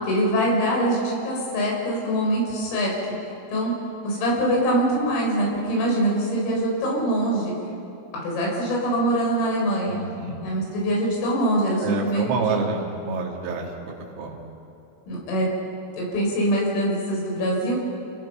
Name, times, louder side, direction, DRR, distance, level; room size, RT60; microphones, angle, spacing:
voice 1, 0.0-2.9 3.5-3.7 4.0-7.5 8.2-10.0 10.4-12.6 15.1-15.5 15.9-17.8, right 1 dB, 80° left, -2 dB, 7.5 m, -23 dB
voice 2, 9.9-10.4 11.8-14.4, right 4 dB, 85° right, -1 dB, 5.2 m, -28 dB
29.0 x 18.5 x 5.7 m, 3.0 s
omnidirectional pair, 5.8 m